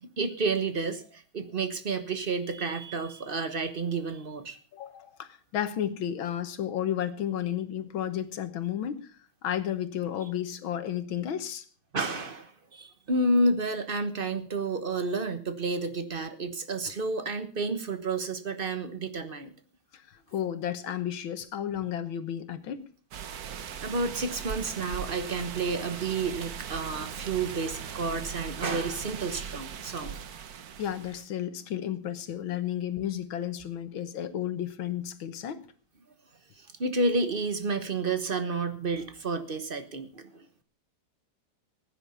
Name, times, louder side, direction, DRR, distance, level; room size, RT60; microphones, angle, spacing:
voice 1, 0.0-4.6 11.9-19.5 23.5-30.2 36.6-40.4, right 3 dB, 35° right, 9 dB, 1.1 m, -30 dB
voice 2, 4.7-9.0 9.4-11.6 19.9-22.8 30.8-35.6, left 10 dB, 80° left, 11 dB, 1.9 m, -32 dB
sound 1, 23.1-31.2, right 7 dB, 55° right, 1.3 m, -39 dB
15.5 x 9.7 x 5.6 m, 0.41 s
omnidirectional pair, 2.1 m